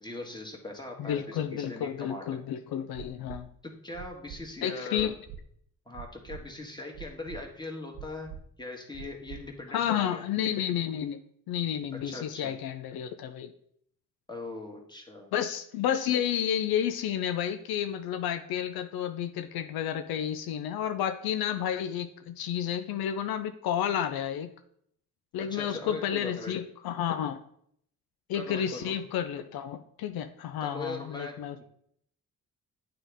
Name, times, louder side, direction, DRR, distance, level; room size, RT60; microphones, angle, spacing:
voice 1, 0.0-2.4 3.6-5.1 5.9-8.3 8.6-10.2 11.9-12.5 14.3-15.3 25.4-26.6 28.3-28.9 30.6-31.6, left 2 dB, 10° left, 1 dB, 1.7 m, -40 dB
voice 2, 1.0-3.5 4.6-5.1 9.7-11.2 11.5-13.5 15.3-24.5 25.3-27.4 28.3-31.6, left 9 dB, 80° left, 9 dB, 0.5 m, -31 dB
sound 1, 2.9-3.4 3.9-4.4 4.9-5.4 5.9-6.4 6.9-7.4 7.9-8.4 8.9-9.4 9.9-10.0, right 9 dB, 70° right, 0.7 m, -43 dB
8.8 x 3.8 x 3.5 m, 0.68 s
supercardioid pair, 55°, 36 cm